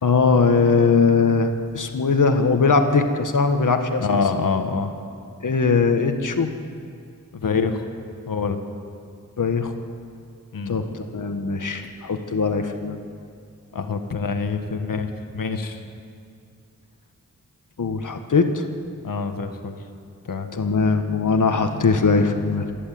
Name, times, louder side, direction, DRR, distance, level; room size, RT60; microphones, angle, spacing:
voice 1, 0.0-4.2 5.4-6.5 9.4-9.7 10.7-13.0 17.8-18.6 20.5-22.7, left 4 dB, 65° left, 6 dB, 1.7 m, -20 dB
voice 2, 4.0-4.9 7.3-7.8 8.3-8.6 10.5-10.8 13.7-15.8 19.0-19.8 20.3-20.5, left 5 dB, 90° left, 6 dB, 1.7 m, -25 dB
26.5 x 11.0 x 9.3 m, 2.4 s
wide cardioid pair, 70°, 33 cm